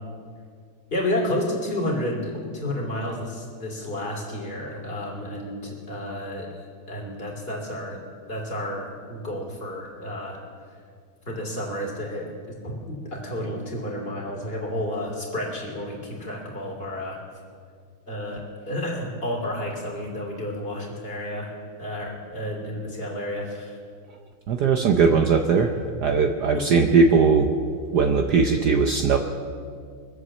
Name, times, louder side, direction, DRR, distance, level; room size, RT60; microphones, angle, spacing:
voice 1, 0.9-6.5 6.9-8.0 8.3-10.4 11.3-17.2 18.1-18.4 18.7-21.5 21.8-23.8 26.5-26.6, left 1 dB, 25° left, -2 dB, 3.2 m, -31 dB
voice 2, 24.5-27.5 27.9-29.2, right 5 dB, 60° right, 5 dB, 1.2 m, -19 dB
23.0 x 8.0 x 7.3 m, 2.1 s
omnidirectional pair, 2.3 m